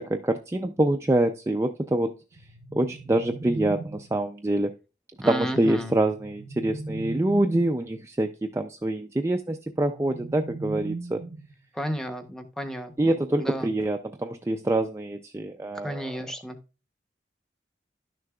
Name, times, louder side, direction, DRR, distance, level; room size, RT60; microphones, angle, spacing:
voice 1, 0.0-2.1 2.7-4.7 5.3-11.2 13.0-16.1, right 1 dB, 15° right, 0.4 m, -25 dB
sound 1, 2.3-4.2 6.0-7.9 9.7-11.7, right 2 dB, 80° right, 0.9 m, -38 dB
voice 2, 5.2-6.0 11.7-13.7 15.7-16.6, equal, 5° left, 0.8 m, -33 dB
11.5 x 6.4 x 2.3 m
head